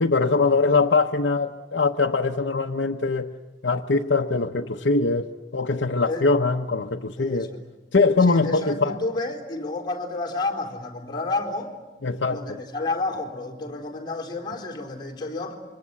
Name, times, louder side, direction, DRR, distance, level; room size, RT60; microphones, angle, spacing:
voice 1, 0.0-3.3 3.6-7.5 7.9-9.0 12.0-12.4, left 3 dB, 75° left, 0.9 m, -22 dB
voice 2, 7.2-7.6 8.3-11.7 12.3-15.5, left 2 dB, 25° left, 3.8 m, -30 dB
27.0 x 24.0 x 8.3 m
head